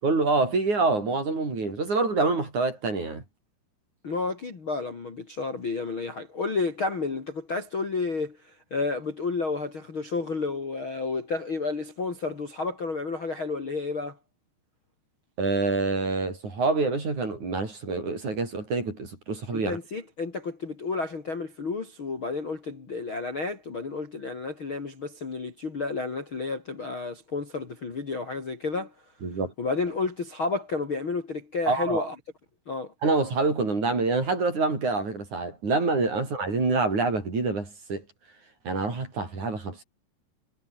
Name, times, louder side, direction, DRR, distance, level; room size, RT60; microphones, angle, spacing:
voice 1, 0.0-3.2 15.4-19.8 29.2-29.5 31.7-32.1 33.0-38.0 38.6-39.8, right 3 dB, 40° right, 7.6 m, -26 dB
voice 2, 4.0-14.2 19.5-28.9 29.6-32.1 32.7-32.9, left 4 dB, 30° left, 3.0 m, -31 dB
omnidirectional pair, 5.4 m